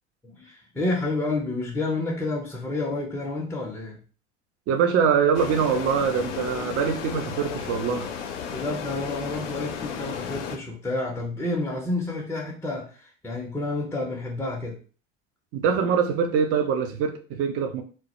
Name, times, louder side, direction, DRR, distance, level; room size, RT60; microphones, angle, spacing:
voice 1, 0.2-4.0 8.5-14.8, left 2 dB, 5° left, 0.5 m, -29 dB
voice 2, 4.7-8.1 15.5-17.8, right 6 dB, 40° right, 0.5 m, -23 dB
sound 1, 5.3-10.6, left 7 dB, 75° left, 0.5 m, -34 dB
2.1 x 2.0 x 2.9 m
hypercardioid pair, 70°, 36 cm